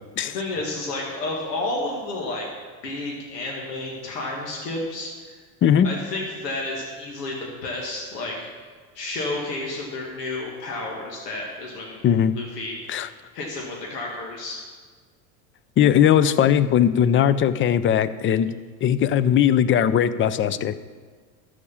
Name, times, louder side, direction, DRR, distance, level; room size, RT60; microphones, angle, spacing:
voice 1, 0.3-2.5 2.8-5.4 5.8-8.5 8.9-12.0 12.4-12.8 13.3-14.6, left 2 dB, 90° left, -1 dB, 2.0 m, -31 dB
voice 2, 15.8-18.5 18.8-20.7, left 9 dB, 25° left, 15 dB, 0.5 m, -19 dB
13.0 x 5.0 x 7.1 m, 1.5 s
supercardioid pair, 100°, 47 cm